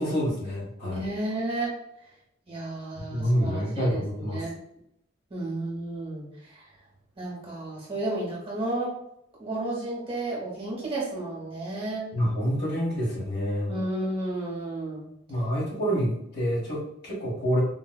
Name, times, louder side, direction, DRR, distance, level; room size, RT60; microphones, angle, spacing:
voice 1, 0.0-1.0 2.9-4.5 12.1-13.7 15.3-17.6, equal, 55° left, -5 dB, 1.4 m, -27 dB
voice 2, 0.8-1.8 2.5-4.6 5.3-6.6 7.2-9.0 9.4-12.1 13.7-15.1, right 2 dB, 30° right, -4 dB, 1.0 m, -32 dB
4.0 x 2.3 x 2.2 m, 0.77 s
head